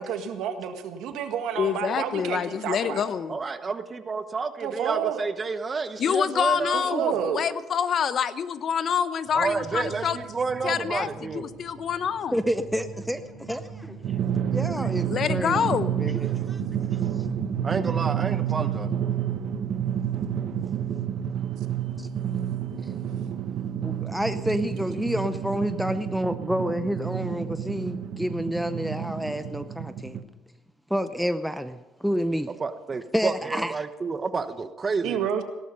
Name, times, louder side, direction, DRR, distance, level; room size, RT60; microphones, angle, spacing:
voice 1, 0.0-3.0 4.6-5.2 6.7-7.4 35.0-35.4, right 8 dB, 80° right, 1.8 m, -29 dB
voice 2, 1.6-3.4 6.0-10.2 10.6-12.4 14.8-16.0, left 7 dB, 50° left, 0.8 m, -27 dB
voice 3, 3.3-7.2 9.3-11.5 17.6-18.9 32.6-35.4, right 4 dB, 30° right, 1.0 m, -30 dB
sound 1, 9.2-17.8, right 5 dB, 45° right, 5.9 m, -44 dB
voice 4, 12.3-14.0 14.5-16.3 18.6-18.7 22.0-22.1 23.8-30.2 30.9-32.5 33.1-33.7, equal, ahead, 0.6 m, -29 dB
Drum, 14.0-30.2, right 9 dB, 65° right, 1.2 m, -29 dB
17.5 x 12.5 x 5.5 m
cardioid pair, 110°, 0 cm